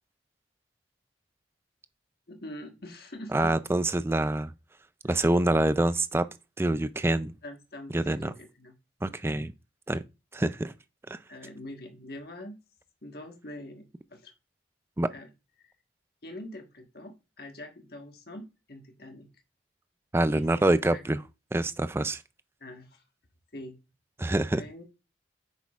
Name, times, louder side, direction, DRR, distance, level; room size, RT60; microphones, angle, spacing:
voice 1, 2.3-3.5 5.0-5.2 7.4-8.7 9.4-9.5 11.3-12.6 13.0-13.8 14.1-14.3 15.1-15.3 15.6-15.7 16.2-19.3 20.3-20.5 20.8-21.0 22.6-23.0 23.5-23.8 24.6-24.8, left 1 dB, 55° left, 1.4 m, -44 dB
voice 2, 3.3-4.5 5.0-6.3 6.6-7.3 7.9-8.3 9.0-9.5 9.9-10.0 10.3-10.7 11.1-11.2 15.0-15.1 20.1-21.2 21.5-22.2 24.2-24.6, right 1 dB, 15° right, 0.3 m, -26 dB
8.1 x 6.1 x 2.4 m
head